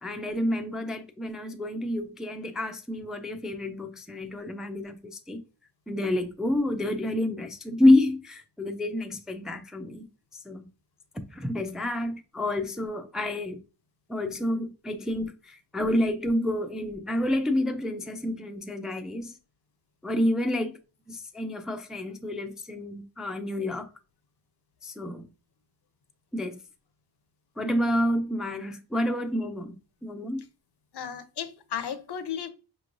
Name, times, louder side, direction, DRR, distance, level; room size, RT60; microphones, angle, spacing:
voice 1, 0.0-5.4 5.9-10.1 10.5-10.7 11.1-13.6 14.1-19.3 20.0-20.8 21.1-23.9 24.8-25.3 26.3-26.6 27.6-30.4, left 1 dB, ahead, 0.4 m, -28 dB
voice 2, 30.9-32.5, left 8 dB, 65° left, 0.6 m, -34 dB
5.1 x 3.0 x 2.5 m
wide cardioid pair, 105°, 43 cm